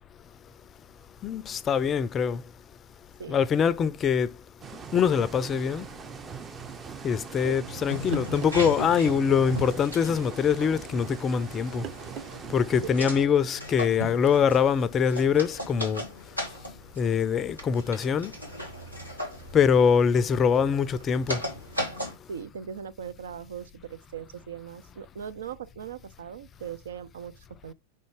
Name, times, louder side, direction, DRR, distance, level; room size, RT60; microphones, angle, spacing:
voice 1, 1.2-2.4 3.3-4.3 4.9-5.9 7.0-11.8 12.5-16.0 17.0-18.3 19.5-21.4, left 7 dB, 25° left, 0.4 m, -23 dB
sound 1, 4.6-13.3, right 7 dB, 20° right, 0.6 m, -42 dB
sound 2, 7.7-22.2, equal, 90° right, 1.9 m, -37 dB
sound 3, 8.1-8.7 10.1-10.3 11.8-12.4 12.7-12.8 14.0-14.1, right 9 dB, 40° right, 1.0 m, -41 dB
voice 2, 12.9-13.3 22.3-27.7, right 8 dB, 65° right, 0.5 m, -40 dB
5.5 x 4.0 x 4.9 m
figure-of-eight pair, 90°, 0 cm